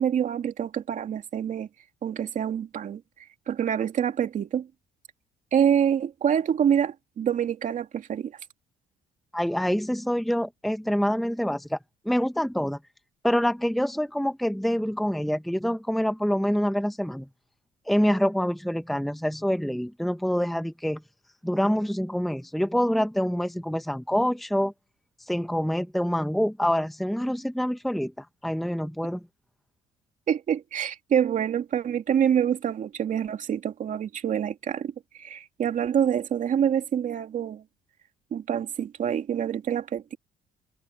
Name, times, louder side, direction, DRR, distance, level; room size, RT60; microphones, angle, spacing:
voice 1, 0.0-1.7 2.0-3.0 3.5-4.7 5.5-8.3 30.3-34.9 35.2-37.6 38.3-40.2, right 9 dB, 50° right, 2.6 m, -26 dB
voice 2, 9.3-11.8 12.0-12.8 13.2-17.3 17.9-21.0 21.4-24.7 25.3-29.2, equal, ahead, 1.0 m, -26 dB
cardioid pair, 110°, 17 cm